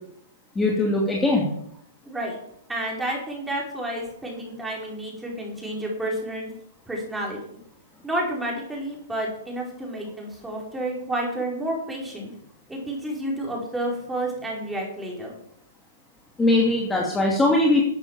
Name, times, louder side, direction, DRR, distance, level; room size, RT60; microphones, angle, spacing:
voice 1, 0.5-1.5 16.4-17.8, left 2 dB, 10° left, -1 dB, 2.5 m, -20 dB
voice 2, 2.1-2.4 2.7-6.5 6.9-7.6 8.0-12.3 12.7-15.3, right 1 dB, 5° right, -2 dB, 5.2 m, -30 dB
12.5 x 8.9 x 7.5 m, 0.75 s
hypercardioid pair, 140°, 0 cm